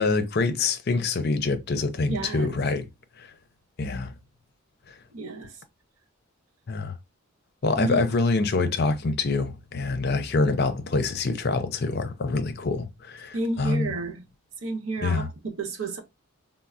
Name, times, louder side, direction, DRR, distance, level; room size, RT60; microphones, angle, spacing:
voice 1, 0.0-2.9 3.2-3.3 3.8-4.1 4.9-5.0 6.7-6.9 7.6-13.9 15.0-15.3, left 3 dB, 50° left, 0.5 m, -25 dB
voice 2, 2.1-2.5 5.1-5.5 7.8-8.0 13.3-14.2 14.6-16.0, right 2 dB, 85° right, 0.8 m, -31 dB
4.1 x 2.0 x 2.4 m
head